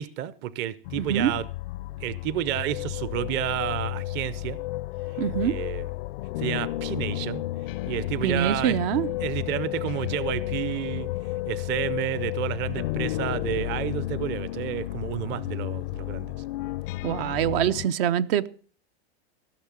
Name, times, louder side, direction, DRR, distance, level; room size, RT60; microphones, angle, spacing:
voice 1, 0.0-1.5 2.0-4.6 5.4-5.9 6.4-7.4 7.9-8.8 9.2-11.1 11.5-16.3, right 12 dB, 40° right, 0.6 m, -30 dB
sound 1, 0.9-17.9, left 16 dB, 75° left, 0.6 m, -32 dB
voice 2, 1.0-1.3 5.2-5.5 8.2-9.1 17.0-18.5, right 10 dB, 70° right, 0.8 m, -24 dB
15.5 x 6.7 x 7.3 m
supercardioid pair, 140°, 29 cm